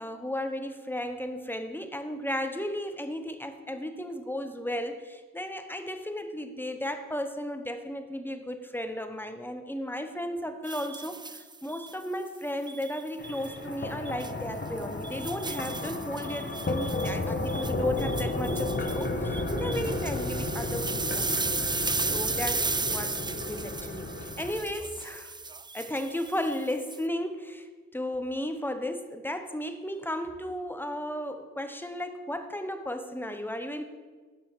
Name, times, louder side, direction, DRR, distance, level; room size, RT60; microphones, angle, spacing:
voice 1, 0.0-21.3 22.1-25.4 25.7-33.8, left 1 dB, 5° left, 7 dB, 0.9 m, -34 dB
sound 1, 10.7-11.9 12.7-13.6 14.1-14.3 14.8-27.0, right 4 dB, 15° right, 0.3 m, -35 dB
sound 2, 13.2-24.6, left 2 dB, 35° left, 1.4 m, -33 dB
7.4 x 5.4 x 4.6 m, 1.4 s
supercardioid pair, 45°, 32 cm